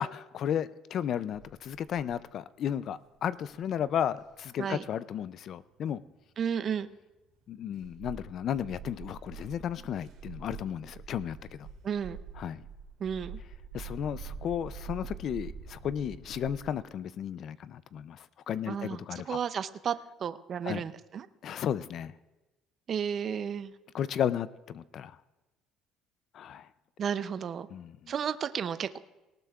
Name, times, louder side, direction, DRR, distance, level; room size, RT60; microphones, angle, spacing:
voice 1, 0.0-6.0 7.5-11.7 12.4-12.6 13.7-19.4 20.6-20.8 21.4-22.1 23.9-25.2 26.3-26.7 27.7-28.1, left 9 dB, 45° left, 16 dB, 0.3 m, -34 dB
sound 1, 0.9-7.0 7.2-16.7, right 6 dB, 60° right, 2.6 m, -46 dB
voice 2, 6.4-6.9 11.8-12.2 13.0-13.4 18.7-19.9 20.2-21.3 22.9-23.7 27.0-27.7 28.1-29.0, right 7 dB, 35° right, 13 dB, 0.4 m, -33 dB
18.5 x 18.5 x 2.3 m, 1.1 s
cardioid pair, 150°, 0 cm